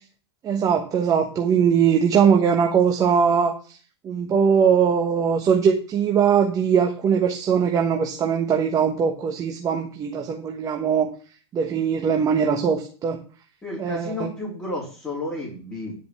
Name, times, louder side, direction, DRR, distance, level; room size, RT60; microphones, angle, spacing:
voice 1, 0.4-3.6 4.0-11.1 11.5-13.2 13.8-14.3, right 7 dB, 25° right, 4 dB, 1.2 m, -21 dB
voice 2, 13.6-16.0, left 2 dB, 15° left, -5 dB, 4.1 m, -32 dB
10.5 x 5.2 x 6.8 m, 0.39 s
hypercardioid pair, 125°, 14 cm